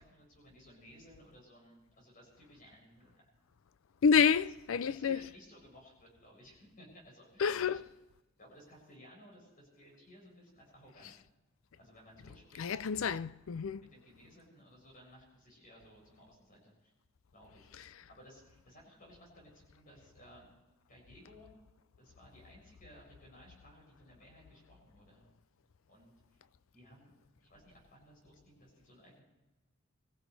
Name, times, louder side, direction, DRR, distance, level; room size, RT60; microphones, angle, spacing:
voice 1, 0.0-3.3 4.7-7.8 8.4-11.2 11.8-13.2 13.7-16.9 17.3-17.7 18.1-20.6 20.9-21.6 22.0-25.3 25.9-26.4 26.7-27.1 27.4-29.2, equal, 40° left, 7.6 m, -58 dB
voice 2, 4.0-5.2 7.4-7.8 12.6-13.8, left 6 dB, 70° left, 0.4 m, -28 dB
24.0 x 16.0 x 3.3 m
head